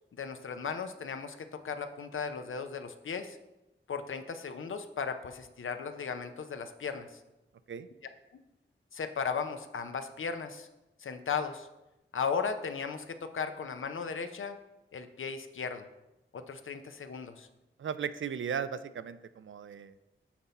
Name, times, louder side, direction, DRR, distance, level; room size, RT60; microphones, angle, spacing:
voice 1, 0.2-3.4 3.9-7.1 8.9-10.7 11.0-11.7 12.1-14.6 14.9-15.9 16.3-17.5, left 6 dB, 75° left, 8 dB, 0.6 m, -36 dB
voice 2, 17.8-19.9, right 7 dB, 70° right, 13 dB, 0.4 m, -36 dB
6.0 x 5.4 x 4.1 m, 0.98 s
cardioid pair, 45°, 21 cm